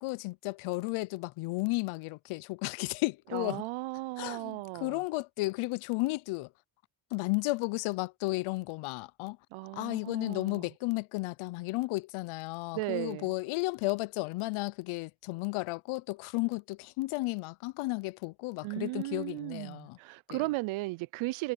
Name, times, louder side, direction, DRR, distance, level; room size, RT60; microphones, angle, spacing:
voice 1, 0.0-3.7 4.2-6.5 7.1-9.4 9.7-20.0 20.3-20.4, left 23 dB, 85° left, 0.7 m, -33 dB
voice 2, 3.3-5.0 9.5-10.7 12.7-13.3 18.6-21.5, right 21 dB, 85° right, 0.7 m, -36 dB
cardioid pair, 90°, 47 cm